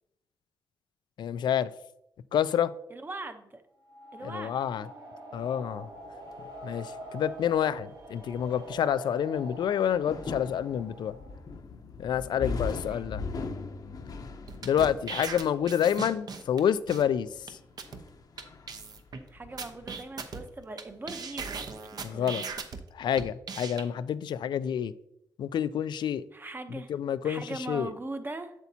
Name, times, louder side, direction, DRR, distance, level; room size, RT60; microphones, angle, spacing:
voice 1, 1.2-1.7 2.3-2.7 4.2-4.9 5.3-5.9 6.6-11.1 12.0-13.2 14.6-17.3 22.0-22.4 22.9-24.9 25.4-26.2 26.9-27.9, left 9 dB, 75° left, 0.4 m, -28 dB
voice 2, 2.9-3.6 4.1-4.6 12.3-12.5 12.9-13.1 15.8-15.9 19.3-21.6 21.9-22.5 26.3-26.9 27.2-28.5, right 2 dB, 25° right, 0.8 m, -40 dB
sound 1, 3.8-11.4, right 1 dB, 75° right, 2.4 m, -44 dB
sound 2, 5.3-21.3 21.5-22.2, left 4 dB, 55° left, 0.8 m, -41 dB
sound 3, 14.5-16.6 16.9-17.0 17.5-17.6 17.8-18.0 18.4-18.5 18.7-19.2 19.6-20.8 21.1-22.8 23.2-23.8, right 5 dB, 60° right, 0.9 m, -38 dB
8.0 x 7.0 x 2.8 m
cardioid pair, 85°, 8 cm